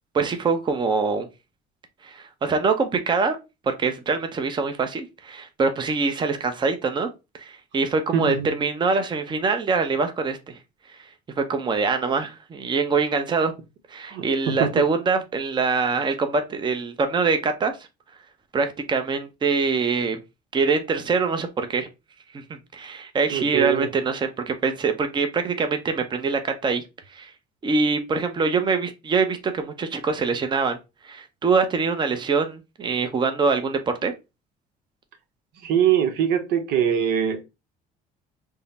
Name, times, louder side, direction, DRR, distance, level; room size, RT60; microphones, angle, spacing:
voice 1, 0.1-1.3 2.0-3.4 3.7-7.1 7.4-10.6 11.4-13.5 13.9-17.7 18.5-20.2 20.5-21.9 22.3-22.4 22.7-26.8 27.1-27.3 27.6-30.8 31.0-34.1, right 4 dB, 25° right, 0.6 m, -24 dB
voice 2, 8.1-8.5 14.1-14.8 23.3-23.9 35.6-37.4, right 8 dB, 80° right, 0.8 m, -23 dB
3.6 x 2.0 x 4.1 m
cardioid pair, 115°, 17 cm